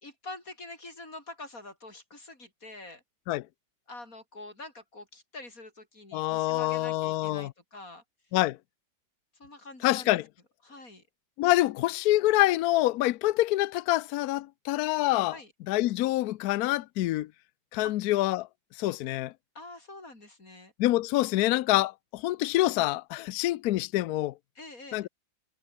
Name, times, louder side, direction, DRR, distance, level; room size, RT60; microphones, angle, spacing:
voice 1, 0.0-3.0 3.9-8.0 9.4-10.2 10.6-11.0 15.3-15.5 17.8-18.0 19.5-20.7 24.5-25.1, left 2 dB, 40° left, 6.4 m, -45 dB
voice 2, 6.1-7.5 8.3-8.6 9.8-10.2 11.4-15.4 15.7-17.3 17.7-18.5 18.8-19.3 20.8-24.3 24.9-25.1, left 16 dB, 80° left, 0.8 m, -26 dB
omnidirectional pair, 2.2 m